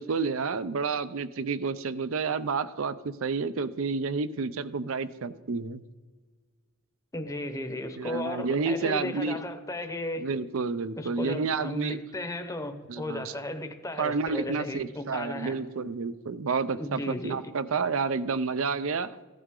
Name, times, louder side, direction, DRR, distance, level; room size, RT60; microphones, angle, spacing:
voice 1, 0.0-5.8 8.0-9.4 10.2-12.0 12.9-13.3 14.0-19.1, right 4 dB, 65° right, 13 dB, 0.5 m, -30 dB
voice 2, 7.1-10.3 11.0-15.6 16.7-17.4, left 1 dB, 15° left, 8 dB, 0.9 m, -35 dB
15.5 x 11.5 x 3.8 m, 1.4 s
head